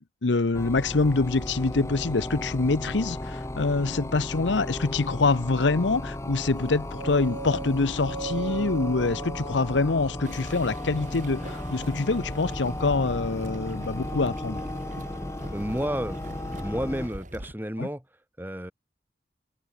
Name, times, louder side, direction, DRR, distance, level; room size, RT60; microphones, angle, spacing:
voice 1, 0.2-14.6 17.8-17.9, left 3 dB, 85° left, 0.8 m, -25 dB
sound 1, 0.5-17.1, left 1 dB, 15° left, 0.7 m, -35 dB
sound 2, 6.6-10.7, right 4 dB, 80° right, 0.7 m, -38 dB
sound 3, 10.2-17.5, right 1 dB, 45° right, 5.4 m, -42 dB
voice 2, 15.5-16.2 16.5-18.7, equal, 10° right, 4.6 m, -32 dB
head